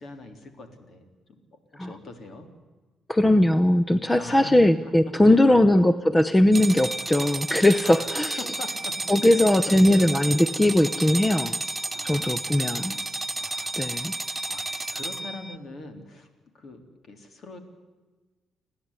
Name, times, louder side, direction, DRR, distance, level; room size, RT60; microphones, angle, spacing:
voice 1, 0.0-2.5 4.2-4.5 4.8-4.9 5.2-5.8 7.8-8.1 8.4-8.9 9.2-10.1 11.5-11.7 11.9-13.0 13.4-16.3 16.5-17.6, left 2 dB, 55° left, 7 dB, 3.6 m, -43 dB
voice 2, 3.1-8.4 9.1-11.6 12.0-12.9 13.8-14.1, left 1 dB, 15° left, 12 dB, 0.8 m, -20 dB
sound 1, 6.5-15.6, right 2 dB, 20° right, 0.9 m, -31 dB
30.0 x 10.5 x 9.8 m, 1.3 s
cardioid pair, 90°, 0 cm